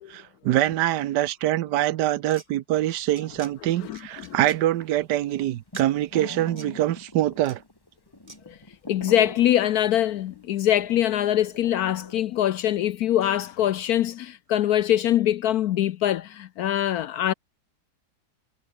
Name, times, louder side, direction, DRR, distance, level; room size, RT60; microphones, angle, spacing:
voice 1, 0.1-7.6, right 13 dB, 80° right, 1.3 m, -24 dB
sound 1, 2.2-2.5 2.9-3.5 3.9-4.6 5.7-5.9 6.6-6.7 7.4-7.6 8.3-8.4, right 2 dB, 25° right, 2.7 m, -46 dB
sound 2, 3.1-3.2 3.4-12.2, left 1 dB, 15° left, 2.4 m, -43 dB
voice 2, 3.8-4.3 8.5-8.6 8.9-17.3, left 12 dB, 70° left, 1.1 m, -23 dB
omnidirectional pair, 1.8 m